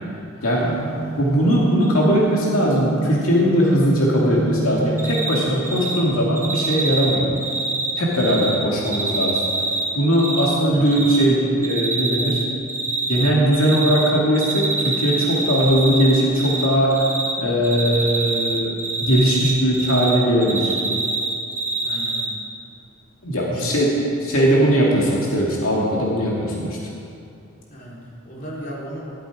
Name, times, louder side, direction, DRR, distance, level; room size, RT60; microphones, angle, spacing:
voice 1, 0.4-0.9 8.1-8.8 10.7-10.9 21.8-22.3 23.4-24.0 27.7-29.1, equal, 40° left, -5 dB, 3.5 m, -36 dB
sound 1, 0.6-6.6, right 2 dB, 70° right, 1.5 m, -28 dB
voice 2, 1.2-7.3 8.0-9.4 9.9-12.4 13.1-17.1 17.4-20.7 23.2-23.9 24.2-26.8, equal, 85° left, -4 dB, 2.3 m, -19 dB
Cricket, 5.0-5.4 5.7-6.0 6.4-8.5 8.8-10.5 10.9-11.2 11.6-12.4 12.7-14.1 14.3-16.7 16.9-17.3 17.6-20.1 20.4-22.2, right 3 dB, 10° right, 1.8 m, -25 dB
15.5 x 12.5 x 4.9 m, 2.5 s
head